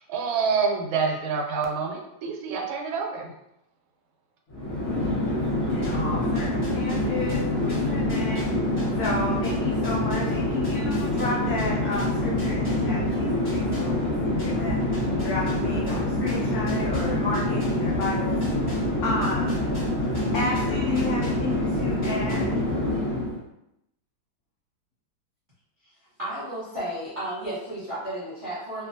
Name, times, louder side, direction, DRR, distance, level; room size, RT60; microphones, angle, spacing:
voice 1, 0.1-3.3, right 5 dB, 80° right, 2 dB, 1.4 m, -27 dB
Chatter / Fixed-wing aircraft airplane, 4.5-23.4, left 1 dB, 45° left, 0.9 m, -26 dB
voice 2, 5.7-8.4 9.0-14.8 15.2-19.7 20.3-22.6, left 2 dB, 85° left, -4 dB, 0.8 m, -32 dB
sound 1, 5.8-13.1 13.4-21.7 22.0-22.8, equal, 15° left, 1.0 m, -45 dB
voice 3, 26.2-28.9, right 1 dB, 35° right, -11 dB, 0.9 m, -33 dB
2.9 x 2.5 x 2.6 m, 0.82 s
omnidirectional pair, 2.2 m